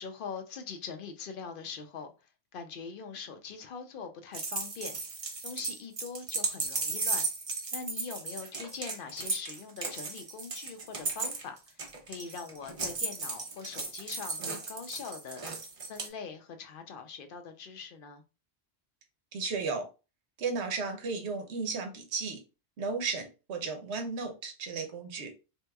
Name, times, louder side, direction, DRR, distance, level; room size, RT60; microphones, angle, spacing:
voice 1, 0.0-2.1 2.5-5.0 5.4-7.2 7.7-11.8 12.1-15.4 15.9-18.2, left 5 dB, 60° left, 0.7 m, -42 dB
sound 1, 4.3-16.1, right 3 dB, 40° right, 0.5 m, -35 dB
voice 2, 19.3-19.9 20.4-22.4 22.8-25.3, right 4 dB, 85° right, 1.0 m, -34 dB
3.4 x 2.9 x 2.2 m
omnidirectional pair, 1.1 m